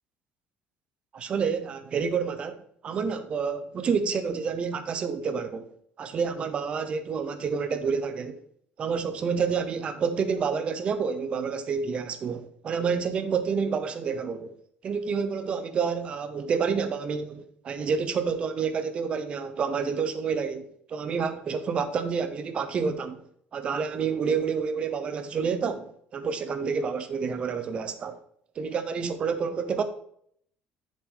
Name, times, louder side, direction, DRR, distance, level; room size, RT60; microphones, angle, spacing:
voice 1, 1.1-5.7 6.0-8.4 8.8-14.5 14.8-20.6 20.9-23.2 23.5-28.2 28.6-29.8, right 6 dB, 30° right, 0.8 m, -29 dB
7.9 x 6.6 x 3.9 m
cardioid pair, 165°, 4 cm